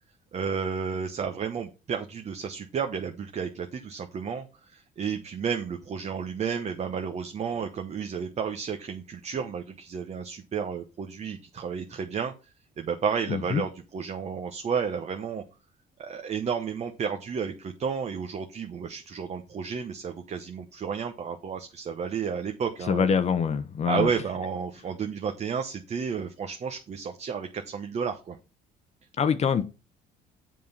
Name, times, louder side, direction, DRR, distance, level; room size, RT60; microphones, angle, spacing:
voice 1, 0.3-15.4 16.0-23.1 23.9-28.4, right 6 dB, 40° right, 1.0 m, -32 dB
voice 2, 13.3-13.6 22.9-24.1 29.2-29.6, left 7 dB, 40° left, 0.8 m, -24 dB
7.6 x 5.5 x 5.7 m
cardioid pair, 110°, 17 cm